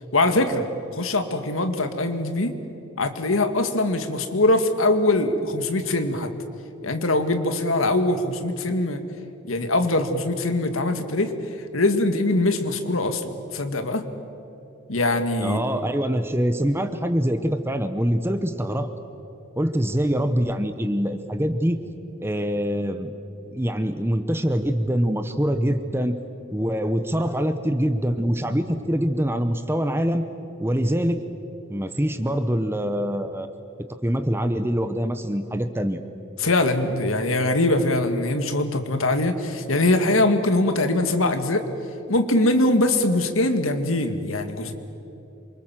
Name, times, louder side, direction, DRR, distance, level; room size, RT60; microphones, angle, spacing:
voice 1, 0.1-0.7 0.9-2.5 3.0-6.3 6.8-9.0 9.5-11.3 11.7-14.0 14.9-15.6 36.4-41.6 42.1-44.7, left 2 dB, 90° left, 8 dB, 2.0 m, -22 dB
voice 2, 15.4-18.9 19.6-21.8 22.2-23.1 23.5-26.2 26.5-30.3 30.6-31.2 31.7-33.5 34.0-36.0, equal, 10° right, 9 dB, 0.9 m, -24 dB
27.5 x 25.0 x 7.6 m, 2.9 s
head